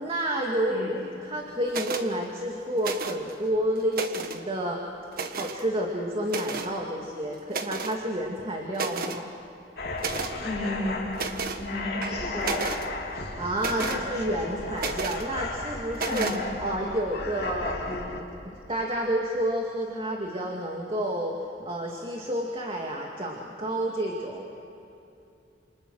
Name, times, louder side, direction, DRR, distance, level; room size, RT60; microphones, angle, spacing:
voice 1, 0.0-4.8 5.1-9.3 13.1-16.3 16.6-21.4 21.7-24.5, equal, 30° right, 0 dB, 2.3 m, -30 dB
sound 1, 1.7-2.1 2.8-3.3 3.8-4.4 5.1-5.6 6.3-6.7 7.5-8.0 8.4-8.5 8.7-9.2 10.0-10.3 11.1-11.6 12.0-12.9 13.6-14.0 14.8-15.2 15.9-16.4, right 4 dB, 55° right, 1.5 m, -32 dB
sound 2, 9.8-18.2, left 2 dB, 60° left, 3.2 m, -34 dB
voice 2, 10.4-11.0 11.6-12.7 13.7-14.1 16.1-16.4, left 1 dB, 5° right, -6 dB, 5.5 m, -33 dB
29.0 x 28.5 x 6.3 m, 2.9 s
head